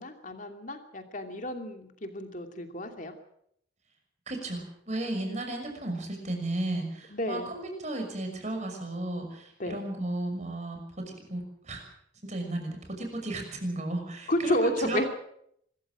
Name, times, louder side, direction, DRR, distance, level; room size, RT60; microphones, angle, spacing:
voice 1, 0.0-3.1 7.1-7.5 9.6-9.8 14.3-15.1, left 1 dB, 40° left, 5 dB, 2.7 m, -31 dB
voice 2, 4.3-11.8 12.2-15.1, right 1 dB, 35° right, 3 dB, 6.0 m, -34 dB
25.0 x 14.0 x 7.7 m, 0.72 s
head